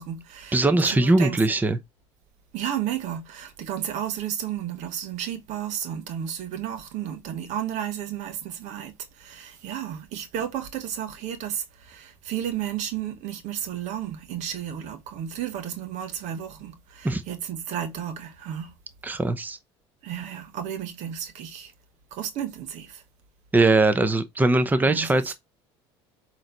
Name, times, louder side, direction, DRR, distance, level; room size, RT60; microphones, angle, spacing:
voice 1, 0.0-1.4 2.5-18.7 20.0-21.7 22.1-23.0 24.8-25.3, right 10 dB, 65° right, 1.3 m, -33 dB
voice 2, 0.5-1.8 17.0-17.2 19.0-19.6 23.5-25.3, right 2 dB, 15° right, 0.8 m, -21 dB
7.7 x 3.2 x 4.0 m
hypercardioid pair, 75°, 13 cm